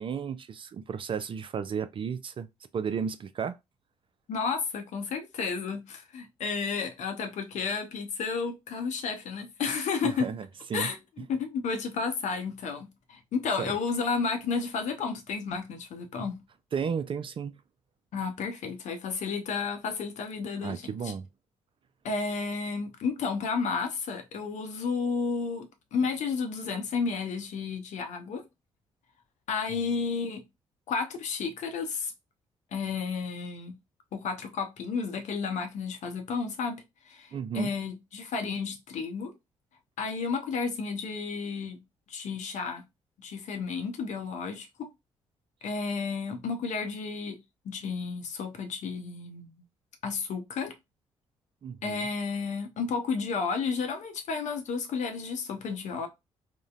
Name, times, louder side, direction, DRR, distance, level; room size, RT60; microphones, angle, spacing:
voice 1, 0.0-2.5 2.7-3.6 10.0-10.5 10.7-10.9 13.6-13.8 16.7-17.5 20.6-21.3 29.7-29.8 37.3-37.7 51.6-52.1, right 6 dB, 35° right, 0.3 m, -33 dB
voice 2, 4.3-10.3 10.7-16.4 18.1-21.1 22.0-28.4 29.5-30.4 30.9-32.1 32.7-33.8 34.1-36.8 37.1-39.3 40.0-41.8 42.1-42.8 43.2-44.9 45.6-47.4 47.6-49.5 50.0-50.7 51.8-56.1, left 5 dB, 55° left, 0.7 m, -32 dB
3.7 x 2.0 x 2.4 m
figure-of-eight pair, 40°, 14 cm